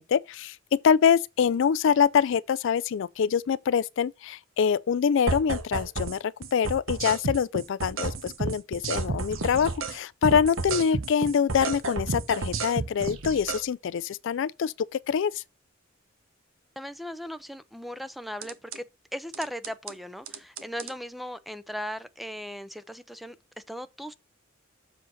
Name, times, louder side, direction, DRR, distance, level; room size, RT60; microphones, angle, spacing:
voice 1, 0.0-15.4, left 7 dB, 65° left, 0.4 m, -25 dB
sound 1, 5.3-6.2 6.4-10.0 10.2-13.6 18.4-18.8 19.3-19.9 20.3-20.9, right 3 dB, 80° right, 1.1 m, -31 dB
voice 2, 16.8-18.8 19.1-23.4 23.7-24.1, equal, ahead, 0.5 m, -37 dB
7.4 x 4.0 x 6.3 m
head